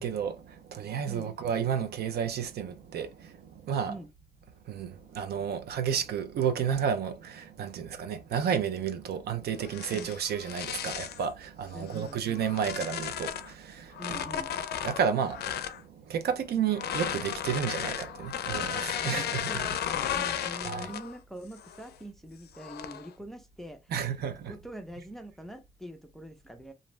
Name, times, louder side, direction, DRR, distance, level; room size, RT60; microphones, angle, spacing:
voice 1, 0.0-3.9 4.7-14.2 14.8-19.7 20.6-20.9 23.9-24.5, right 7 dB, 80° right, 0.5 m, -32 dB
sound 1, 9.6-11.3 11.9-13.5 13.9-15.8 16.7-21.2 21.6-21.9 22.6-23.1, left 9 dB, 80° left, 0.4 m, -34 dB
voice 2, 11.7-12.2 14.0-14.5 18.9-23.9 24.2-26.7, right 1 dB, ahead, 0.5 m, -44 dB
2.6 x 2.0 x 3.0 m
cardioid pair, 125°, 16 cm